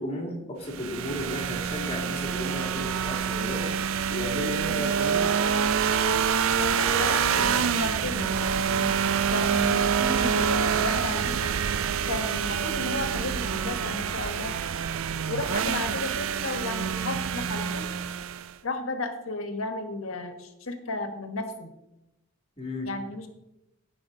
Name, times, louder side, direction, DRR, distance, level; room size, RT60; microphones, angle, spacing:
voice 1, 0.0-3.7 4.1-5.4 6.8-7.7 22.6-22.9, left 1 dB, 30° left, 0 dB, 2.3 m, -34 dB
sound 1, 0.7-18.5, right 7 dB, 75° right, 0.4 m, -26 dB
voice 2, 6.6-8.9 9.3-11.5 12.1-14.6 15.3-17.9 18.6-21.7 22.8-23.3, left 2 dB, 80° left, 7 dB, 1.3 m, -34 dB
17.5 x 5.9 x 3.8 m, 0.92 s
head